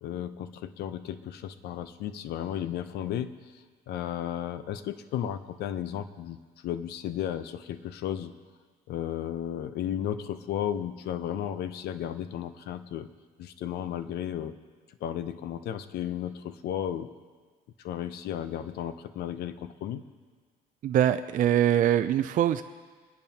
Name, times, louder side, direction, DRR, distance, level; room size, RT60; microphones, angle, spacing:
voice 1, 0.0-8.3 8.9-13.1 13.4-14.6 15.0-17.1 17.8-20.0, left 10 dB, 75° left, 12 dB, 0.7 m, -34 dB
voice 2, 20.8-22.6, right 11 dB, 50° right, 9 dB, 0.4 m, -23 dB
23.0 x 10.5 x 2.9 m, 1.5 s
cardioid pair, 110°, 17 cm